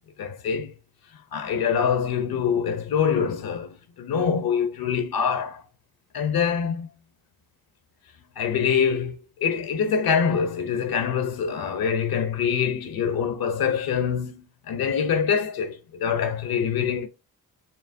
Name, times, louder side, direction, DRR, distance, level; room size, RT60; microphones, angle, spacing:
voice 1, 0.2-0.7 1.3-5.6 6.1-6.9 8.4-17.1, left 7 dB, 70° left, 0.6 m, -25 dB
4.6 x 2.9 x 2.5 m
cardioid pair, 75°, 39 cm